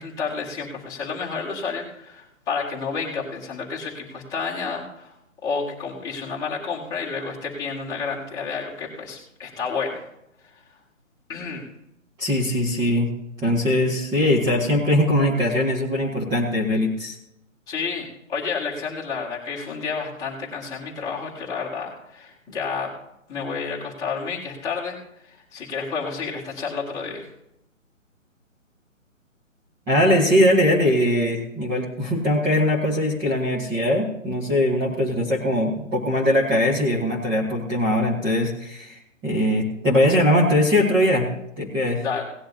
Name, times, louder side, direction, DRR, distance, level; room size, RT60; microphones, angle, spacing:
voice 1, 0.0-5.1 5.4-10.0 11.3-11.6 17.7-22.9 23.3-25.0 25.2-27.3 42.0-42.2, left 5 dB, 10° left, -6 dB, 1.9 m, -30 dB
voice 2, 12.2-13.1 13.4-17.1 29.9-41.3 41.6-42.0, left 1 dB, 10° right, -6 dB, 1.3 m, -21 dB
18.0 x 10.0 x 2.8 m, 0.80 s
figure-of-eight pair, 140°, 40 cm